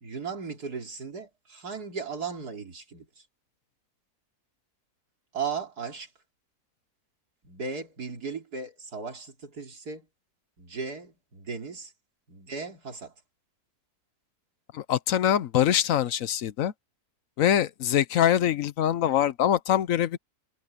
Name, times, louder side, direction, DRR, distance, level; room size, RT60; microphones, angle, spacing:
voice 1, 0.0-3.2 5.3-6.1 7.4-10.1 10.6-11.9 12.3-13.1, right 5 dB, 80° right, 3.7 m, -36 dB
voice 2, 14.7-16.7 17.4-20.2, left 10 dB, 65° left, 1.0 m, -24 dB
omnidirectional pair, 1.6 m